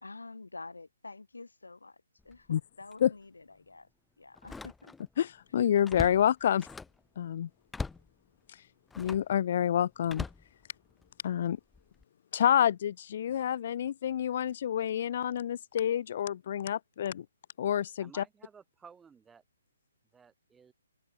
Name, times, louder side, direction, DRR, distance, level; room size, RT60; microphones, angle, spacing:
voice 1, 0.0-3.9 4.2-4.9, left 3 dB, 80° left, 3.1 m, -48 dB
Slam, 2.2-2.5 2.9-3.0 4.4-5.2 5.5-7.1 7.7-8.1 8.9-9.3 10.1-11.1 11.7-12.0, left 4 dB, 5° left, 1.4 m, -41 dB
voice 2, 5.2-6.7 7.2-7.5 9.0-10.2 11.2-11.6 12.3-17.2 17.6-18.2, left 10 dB, 45° left, 0.3 m, -28 dB
voice 3, 18.0-19.4 20.1-20.7, right 6 dB, 10° right, 3.1 m, -54 dB
figure-of-eight pair, 135°, 0 cm